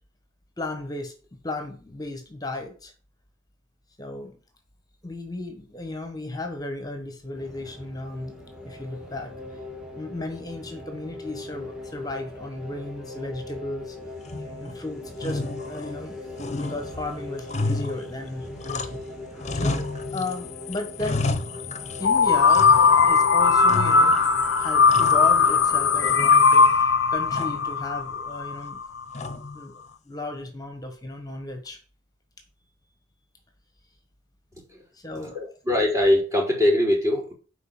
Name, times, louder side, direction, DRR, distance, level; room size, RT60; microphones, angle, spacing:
voice 1, 0.6-1.1 1.4-2.9 4.0-4.4 5.0-8.3 8.6-9.3 9.9-14.0 14.4-19.0 19.3-19.9 20.1-21.3 22.0-22.7 23.1-24.2 24.5-28.8 29.5-31.8 34.9-35.4, left 2 dB, 20° left, 5 dB, 1.6 m, -35 dB
sound 1, 7.3-26.1, left 2 dB, 5° right, 2.3 m, -40 dB
sound 2, 14.2-14.8 15.2-16.1 16.4-19.1 19.4-20.4 20.7-22.1 22.5-23.2 23.7-24.3 24.6-25.7 26.0-26.7 27.3-27.7 29.1-29.6, left 2 dB, 35° left, 0.9 m, -31 dB
sound 3, 22.0-28.8, left 5 dB, 65° left, 0.6 m, -18 dB
voice 2, 35.3-37.3, left 1 dB, 20° right, -10 dB, 4.4 m, -22 dB
8.1 x 5.1 x 7.4 m, 0.37 s
head